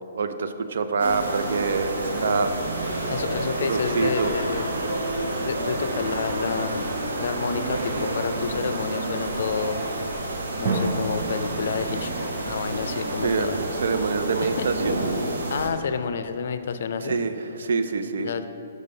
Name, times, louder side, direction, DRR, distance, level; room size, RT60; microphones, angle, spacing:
voice 1, 0.1-2.6 3.7-4.3 13.2-15.0 17.0-18.3, right 4 dB, 70° right, 9 dB, 0.5 m, -26 dB
sound 1, 1.0-15.7, right 2 dB, 90° right, 1.0 m, -29 dB
sound 2, 2.6-5.7 10.6-14.3, right 3 dB, 40° right, 0.8 m, -34 dB
voice 2, 3.1-4.7 5.4-6.9 7.2-9.8 10.6-13.6 14.4-14.7 15.5-17.2 18.2-18.5, left 6 dB, 65° left, 10 dB, 0.4 m, -29 dB
6.4 x 5.2 x 5.5 m, 2.8 s
hypercardioid pair, 145°, 0 cm